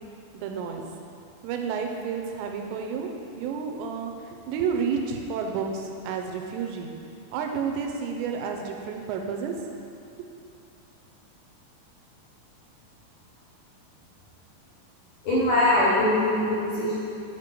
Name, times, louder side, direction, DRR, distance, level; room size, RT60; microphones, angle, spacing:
voice 1, 0.3-0.8 1.4-3.1 3.4-6.9 7.3-9.5, right 6 dB, 85° right, 3 dB, 2.8 m, -30 dB
voice 2, 15.2-17.0, left 1 dB, 65° left, -10 dB, 2.1 m, -22 dB
8.3 x 5.0 x 5.1 m, 2.7 s
omnidirectional pair, 5.1 m